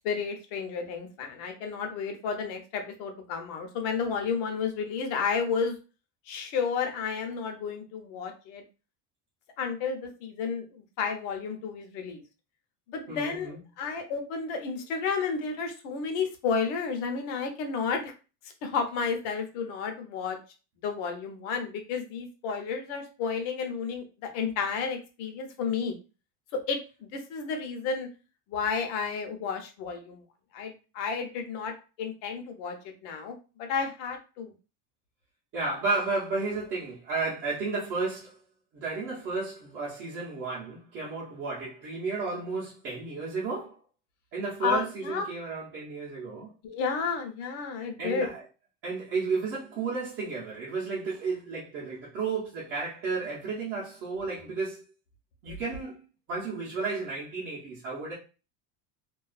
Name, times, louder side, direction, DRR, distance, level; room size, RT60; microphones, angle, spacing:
voice 1, 0.0-5.7 6.3-8.6 9.6-12.2 12.9-18.1 18.6-20.4 20.8-25.9 26.5-28.1 28.5-30.2 30.5-34.5 44.6-45.3 46.6-48.3 55.5-55.6, left 5 dB, 65° left, 0.7 m, -32 dB
voice 2, 13.1-13.6 35.5-38.4 38.7-43.8 44.3-46.5 48.0-48.4 48.8-54.8 55.4-56.0 56.3-58.1, right 4 dB, 35° right, 0.6 m, -33 dB
2.3 x 2.2 x 2.3 m
cardioid pair, 175°, 41 cm